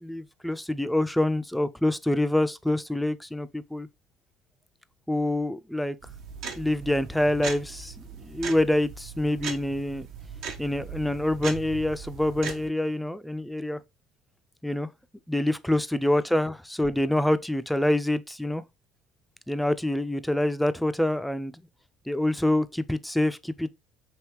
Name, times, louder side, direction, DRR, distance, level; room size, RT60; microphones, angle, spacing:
voice 1, 0.0-3.9 5.1-6.0 6.6-10.1 10.6-13.8 14.6-14.9 15.3-18.6 19.5-21.5 22.1-23.7, left 1 dB, 5° left, 0.3 m, -26 dB
sound 1, 6.0-12.7, right 5 dB, 65° right, 0.7 m, -39 dB
3.5 x 2.7 x 2.9 m
supercardioid pair, 75°, 0 cm